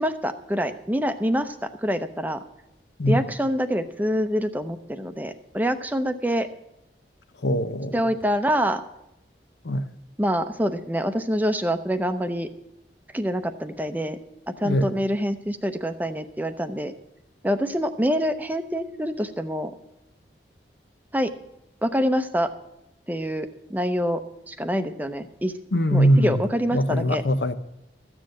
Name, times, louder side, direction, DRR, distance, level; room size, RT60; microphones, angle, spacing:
voice 1, 0.0-2.4 3.1-6.5 7.9-8.8 10.2-12.5 13.1-14.2 14.5-16.9 17.4-19.7 21.1-21.3 21.8-22.5 23.1-24.2 24.5-25.5 25.9-27.2, equal, 10° right, 0.6 m, -26 dB
voice 2, 7.4-8.0 9.6-9.9 14.6-14.9 25.7-26.4 26.7-27.5, equal, 80° left, 0.8 m, -21 dB
14.0 x 7.4 x 7.7 m
head